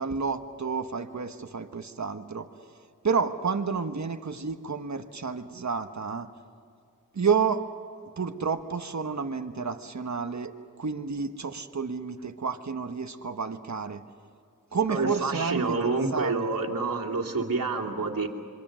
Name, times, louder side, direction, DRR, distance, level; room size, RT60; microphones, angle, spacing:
voice 1, 0.0-2.5 3.0-6.3 7.1-7.6 8.2-14.0 14.7-16.5, right 5 dB, 55° right, 7 dB, 1.4 m, -30 dB
voice 2, 14.9-18.3, right 3 dB, 70° right, -1 dB, 2.7 m, -28 dB
26.5 x 24.0 x 6.4 m, 2.4 s
cardioid pair, 45°, 34 cm